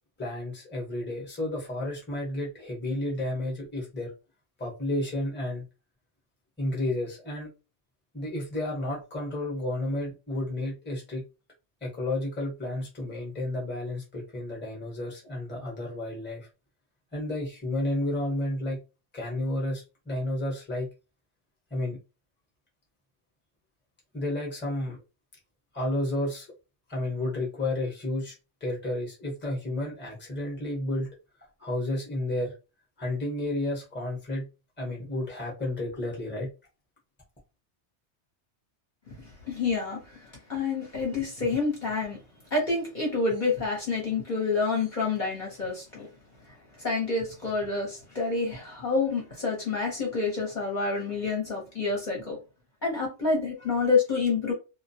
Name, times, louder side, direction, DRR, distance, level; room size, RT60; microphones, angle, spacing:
voice 1, 0.2-4.1 4.6-5.6 6.6-7.5 8.1-11.2 11.8-16.5 17.1-18.8 19.1-20.9 21.7-22.0 24.1-25.0 25.7-26.5 26.9-28.3 28.6-31.1 31.6-32.5 33.0-34.5 34.8-36.5, left 1 dB, 10° left, 0.8 m, -31 dB
voice 2, 39.2-42.2 42.5-46.1 46.5-52.4 52.8-54.5, left 4 dB, 45° left, 0.9 m, -28 dB
2.2 x 2.1 x 2.7 m
omnidirectional pair, 1.2 m